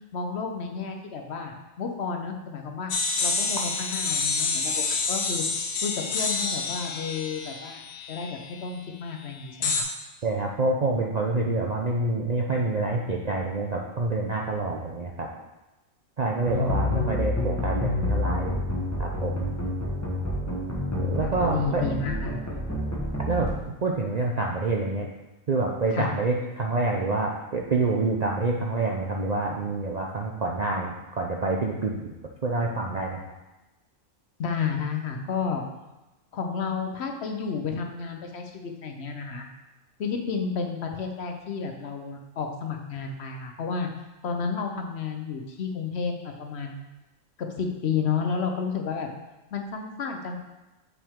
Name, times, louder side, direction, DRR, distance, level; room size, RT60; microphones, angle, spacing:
voice 1, 0.1-2.9 3.2-5.4 5.8-7.8 8.1-9.9 16.5-17.1 21.2-22.4 25.9-26.1 34.4-35.6 36.3-39.5 40.0-43.9 44.2-46.8 47.4-49.1 49.5-50.4, left 5 dB, 60° left, 3 dB, 0.9 m, -31 dB
sound 1, 2.9-8.6 9.6-9.8, left 4 dB, 90° left, 1.2 m, -28 dB
voice 2, 10.2-15.3 16.2-18.6 19.0-19.5 21.0-21.9 23.3-23.5 23.8-25.1 25.5-32.1 32.4-33.2, right 3 dB, 50° right, -1 dB, 0.5 m, -27 dB
sound 2, 16.5-23.5, left 1 dB, 15° left, 1.2 m, -28 dB
6.5 x 5.7 x 3.6 m, 1.0 s
omnidirectional pair, 1.4 m